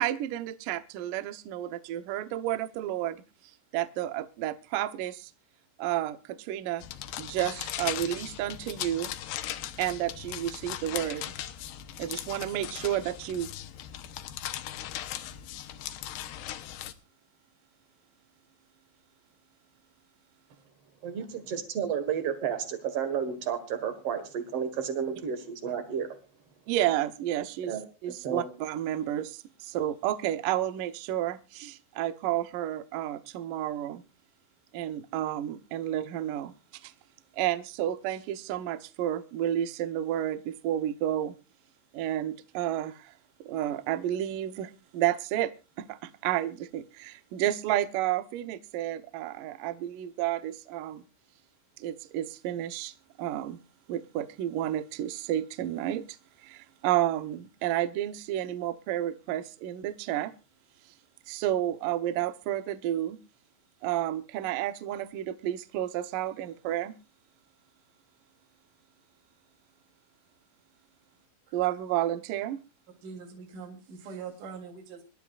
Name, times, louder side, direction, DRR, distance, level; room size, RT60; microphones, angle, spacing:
voice 1, 0.0-3.2 3.7-5.3 5.8-6.8 7.2-9.1 9.8-11.3 12.0-13.5 26.7-27.8 28.0-34.0 34.7-36.5 36.8-36.9 37.4-41.3 41.9-43.1 43.4-51.0 51.8-53.6 53.9-56.1 56.4-60.3 61.3-63.2 63.8-66.9 71.5-72.6, right 12 dB, 85° right, 1.8 m, -31 dB
sound 1, 6.8-16.9, left 12 dB, 75° left, 2.6 m, -38 dB
voice 2, 21.0-26.1 27.7-27.8 28.1-28.5, right 7 dB, 70° right, 1.4 m, -32 dB
voice 3, 73.0-75.0, right 5 dB, 45° right, 4.4 m, -43 dB
26.0 x 12.0 x 2.5 m
omnidirectional pair, 5.5 m